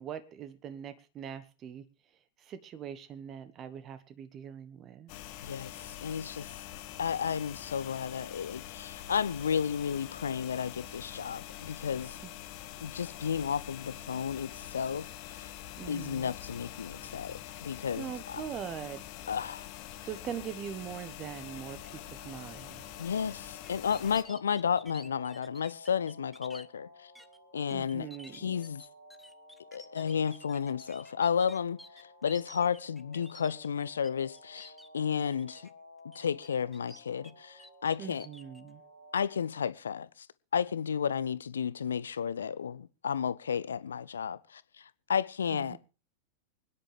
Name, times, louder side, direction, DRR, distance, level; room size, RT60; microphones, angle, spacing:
voice 1, 0.0-1.8 2.4-5.1 12.2-12.3 15.8-16.4 17.9-19.0 20.0-22.8 27.7-28.6 38.0-38.8 45.5-45.8, right 9 dB, 30° right, 1.2 m, -42 dB
sound 1, 5.1-24.2, left 12 dB, 45° left, 1.2 m, -45 dB
voice 2, 5.4-6.6 7.0-12.2 12.8-15.5 15.9-18.4 19.3-19.7 23.0-27.1 27.5-28.1 28.3-28.8 29.7-35.7 36.1-38.3 39.1-40.3 40.5-45.8, left 7 dB, 70° left, 0.6 m, -33 dB
sound 2, 21.2-39.4, equal, 85° right, 7.2 m, -55 dB
sound 3, 23.6-26.7 27.2-27.4 27.7-34.1 34.3-34.9 35.3-35.7 36.1-37.3 37.6-38.6, left 1 dB, ahead, 0.9 m, -52 dB
25.0 x 9.9 x 3.4 m
figure-of-eight pair, 90°, 0 cm